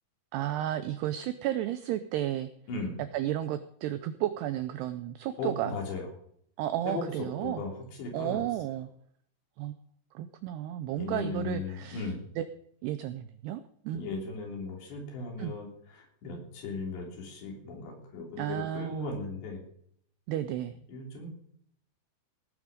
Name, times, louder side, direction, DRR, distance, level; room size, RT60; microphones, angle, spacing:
voice 1, 0.3-2.5 3.1-5.7 6.6-7.6 8.1-8.9 9.6-9.8 10.1-12.5 12.8-14.1 15.4-15.5 18.4-19.1 20.3-20.7, right 12 dB, 90° right, 11 dB, 2.3 m, -33 dB
voice 2, 5.4-6.0 6.9-7.7 8.0-8.4 11.0-12.2 13.9-15.7 16.0-19.6 20.9-21.3, left 3 dB, 65° left, 1 dB, 5.4 m, -37 dB
18.0 x 9.7 x 5.2 m, 0.67 s
omnidirectional pair, 5.6 m